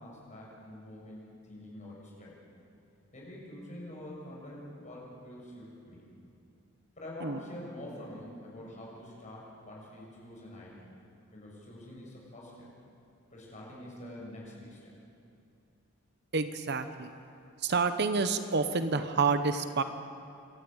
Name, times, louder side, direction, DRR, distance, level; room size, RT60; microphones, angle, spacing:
voice 1, 0.0-2.4 3.1-6.1 7.0-10.8 11.3-12.7 13.3-15.0, left 1 dB, 35° left, -4 dB, 6.6 m, -46 dB
voice 2, 16.3-17.1 17.6-19.8, right 4 dB, 55° right, 10 dB, 0.9 m, -28 dB
26.5 x 13.0 x 8.9 m, 2.5 s
head